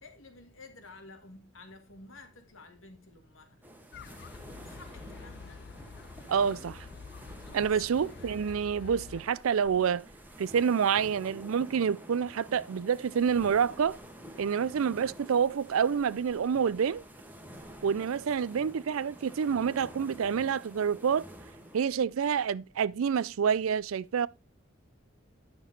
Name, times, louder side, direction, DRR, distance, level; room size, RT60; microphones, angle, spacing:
voice 1, 0.0-3.6 4.6-5.6 7.7-7.8 14.5-14.6, left 3 dB, 75° left, 1.9 m, -52 dB
sound 1, 3.6-21.8, equal, 10° right, 1.3 m, -49 dB
sound 2, 3.9-9.2, left 5 dB, 55° left, 0.5 m, -48 dB
voice 2, 6.3-6.9 7.5-10.0 10.4-14.0 14.4-17.0 17.8-21.3 21.7-24.3, right 7 dB, 90° right, 0.4 m, -28 dB
10.0 x 6.2 x 3.8 m
head